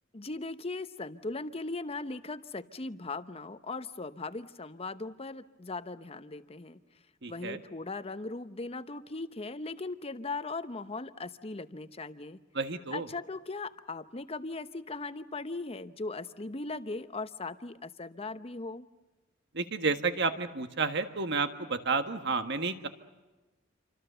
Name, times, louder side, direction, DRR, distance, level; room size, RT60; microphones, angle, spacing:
voice 1, 0.1-6.8 7.3-12.4 12.9-18.9, left 3 dB, 30° left, 12 dB, 0.9 m, -39 dB
voice 2, 7.2-7.6 12.5-13.1 19.5-22.9, right 4 dB, 60° right, 8 dB, 1.6 m, -31 dB
28.0 x 25.0 x 6.9 m, 1.1 s
head